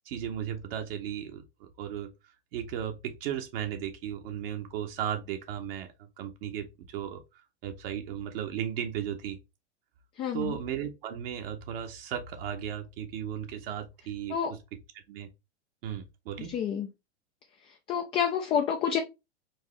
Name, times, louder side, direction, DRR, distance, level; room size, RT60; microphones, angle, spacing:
voice 1, 0.0-2.1 2.5-7.2 7.6-9.4 10.3-14.6 15.1-15.3 15.8-16.6, right 9 dB, 55° right, 0.9 m, -35 dB
voice 2, 10.2-10.6 14.3-14.5 16.5-16.9 17.6-19.0, left 8 dB, 15° left, 0.3 m, -29 dB
4.6 x 2.7 x 3.2 m
hypercardioid pair, 115°, 35 cm